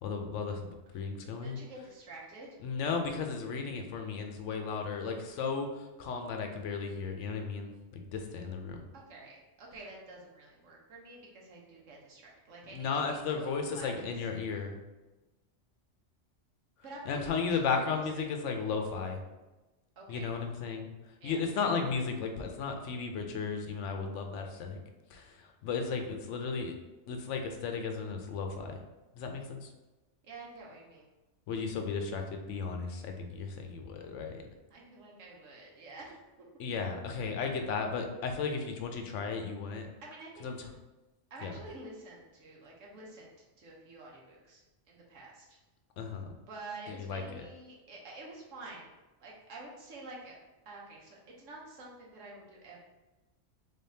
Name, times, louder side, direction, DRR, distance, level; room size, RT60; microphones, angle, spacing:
voice 1, 0.0-1.6 2.6-8.8 12.7-14.8 17.1-19.2 20.1-20.9 21.2-24.8 25.1-26.8 27.1-28.8 29.2-29.7 31.5-34.4 36.6-39.9 40.4-40.6 41.4-41.5 46.0-46.3 46.9-47.5, left 5 dB, 75° left, 4 dB, 0.9 m, -35 dB
voice 2, 1.4-2.5 8.9-14.1 16.8-17.6 17.9-18.3 20.0-20.3 21.2-21.4 30.2-31.1 34.7-36.5 40.0-40.5 41.3-44.6 44.9-45.6 46.5-48.9 49.2-50.4 50.6-52.8, right 2 dB, 80° right, -2 dB, 1.3 m, -48 dB
3.8 x 3.5 x 2.7 m, 1.1 s
omnidirectional pair, 1.3 m